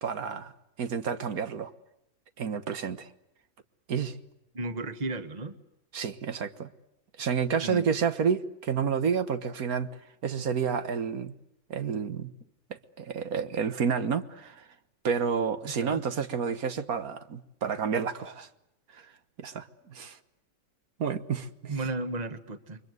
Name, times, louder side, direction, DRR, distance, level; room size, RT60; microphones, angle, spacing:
voice 1, 0.0-0.5 0.8-1.7 2.4-3.1 3.9-4.2 5.9-6.7 7.2-11.3 11.7-12.3 12.7-14.7 15.0-18.5 18.9-19.1 19.4-20.2 21.0-21.7, right 6 dB, 80° right, 1.8 m, -30 dB
voice 2, 4.5-5.6 7.6-7.9 15.7-16.0 21.7-22.8, right 2 dB, 30° right, 1.5 m, -34 dB
29.5 x 24.0 x 8.0 m
omnidirectional pair, 1.5 m